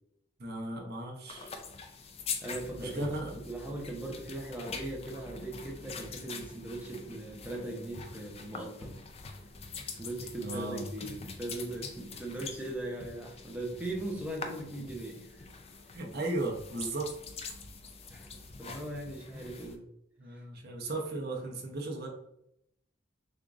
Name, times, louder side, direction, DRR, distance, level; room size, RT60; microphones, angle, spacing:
voice 1, 0.4-1.5 2.8-3.4 10.4-10.8 15.9-17.1 19.3-19.5 20.2-22.1, right 2 dB, 55° right, 0 dB, 0.9 m, -36 dB
sound 1, 1.3-19.7, left 4 dB, 30° left, 0.4 m, -44 dB
voice 2, 2.4-3.1 3.5-9.0 9.8-15.5 18.1-18.3 18.6-19.8, right 1 dB, 10° right, -2 dB, 0.9 m, -39 dB
6.3 x 2.5 x 2.6 m, 0.78 s
head